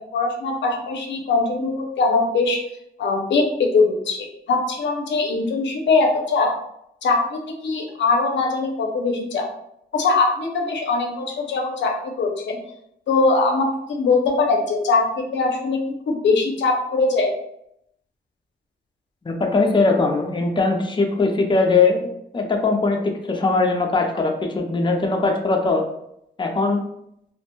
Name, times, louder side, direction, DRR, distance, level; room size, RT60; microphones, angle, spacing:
voice 1, 0.1-2.6 3.0-4.2 4.5-6.5 7.0-9.5 9.9-12.6 13.1-15.8 16.1-17.3, left 3 dB, 85° left, 1 dB, 0.5 m, -21 dB
voice 2, 19.3-22.1 22.3-25.8 26.4-26.8, left 3 dB, 25° left, 2 dB, 0.5 m, -20 dB
2.5 x 2.1 x 2.9 m, 0.76 s
cardioid pair, 75°, 18 cm